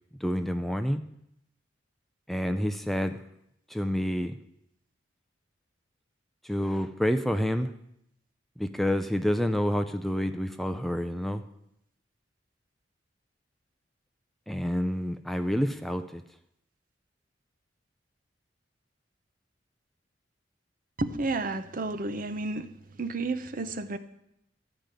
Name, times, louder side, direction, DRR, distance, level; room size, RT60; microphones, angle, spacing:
voice 1, 0.2-1.0 2.3-3.2 3.7-4.4 6.4-7.7 8.6-11.4 14.5-16.2, equal, ahead, 8 dB, 0.4 m, -28 dB
voice 2, 21.0-22.7 23.0-24.0, right 2 dB, 50° right, 11 dB, 0.8 m, -31 dB
13.5 x 5.1 x 9.0 m, 0.80 s
head